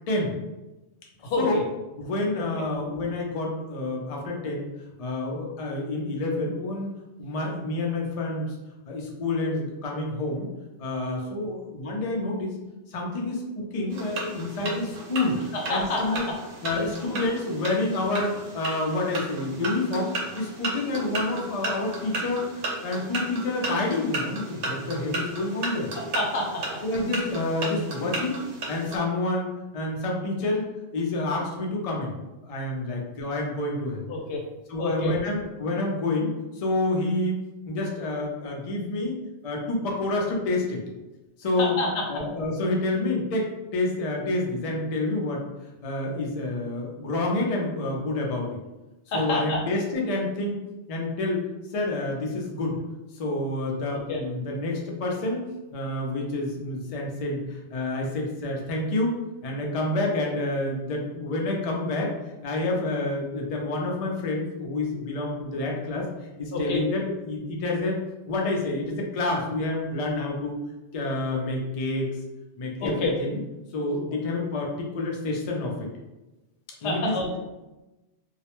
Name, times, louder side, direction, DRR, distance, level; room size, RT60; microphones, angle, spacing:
voice 1, 1.2-1.6 2.4-2.6 11.4-11.5 15.5-16.2 16.7-16.9 25.9-26.8 28.1-28.2 34.1-34.4 34.8-35.1 41.6-42.2 49.1-49.6 54.1-54.2 66.5-66.8 72.8-73.1 76.8-77.4, left 2 dB, 80° left, 0 dB, 0.9 m, -29 dB
voice 2, 2.0-4.7 5.0-8.5 8.9-10.5 10.8-12.6 12.9-15.4 15.7-16.2 16.6-25.9 26.8-28.4 28.7-32.1 32.4-34.0 34.7-39.1 39.4-40.8 41.4-41.8 42.1-45.4 45.8-48.5 49.1-50.6 50.9-51.5 51.7-52.8 53.1-55.5 55.7-59.2 59.4-62.1 62.4-66.1 66.4-70.6 70.9-72.2 72.6-73.4 73.7-75.9 76.8-77.1, left 2 dB, 50° left, -1 dB, 0.4 m, -28 dB
sound 1, 13.9-29.0, right 2 dB, 80° right, 0.9 m, -34 dB
2.3 x 2.1 x 2.9 m, 1.0 s
omnidirectional pair, 1.2 m